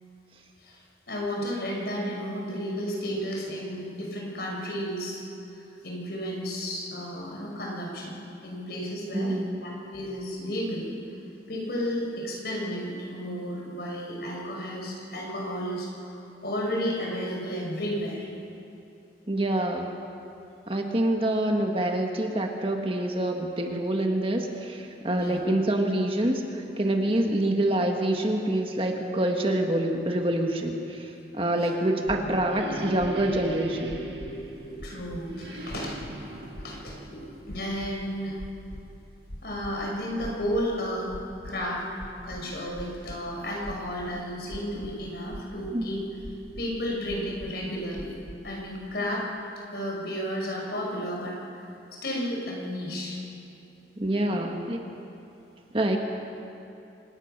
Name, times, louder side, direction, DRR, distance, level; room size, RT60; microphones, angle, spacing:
voice 1, 1.1-5.2 5.8-9.4 9.6-10.9 11.5-16.1 16.4-18.3 25.1-25.4 31.6-31.7 34.8-38.4 39.4-41.1 41.4-41.8 42.2-46.0 46.6-48.2 48.4-49.2 49.7-51.6 52.0-53.2, equal, 60° left, -2 dB, 5.7 m, -32 dB
voice 2, 9.1-9.6 19.3-19.9 20.7-34.0 45.7-45.9 54.0-54.8 55.7-56.0, right 1 dB, 30° right, 2 dB, 1.6 m, -26 dB
sound 1, 31.9-38.3, right 1 dB, 75° right, 2.2 m, -40 dB
sound 2, 32.1-32.5 33.0-33.4 33.9-34.4 34.8-35.2 35.7-36.1 36.6-37.0 37.5-37.9 38.4-38.9 39.3-39.7 40.2-40.7 41.1-41.5 42.0-43.2 43.6-44.1 44.5-45.0 45.3-45.8 46.2-46.7 47.1-47.6 47.9-48.4, equal, 90° left, 2.8 m, -41 dB
25.5 x 19.5 x 6.7 m, 2.7 s
head